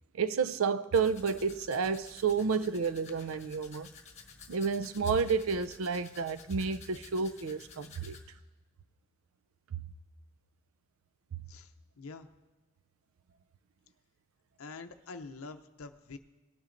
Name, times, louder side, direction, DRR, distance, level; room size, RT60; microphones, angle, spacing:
voice 1, 0.1-3.9 4.5-8.2 9.7-9.8, right 5 dB, 70° right, 0.4 m, -30 dB
Domestic sounds home sounds, 0.9-8.2, left 5 dB, 30° left, 1.3 m, -53 dB
voice 2, 12.0-12.3 14.6-16.2, left 4 dB, 75° left, 0.6 m, -45 dB
18.5 x 10.5 x 2.6 m
head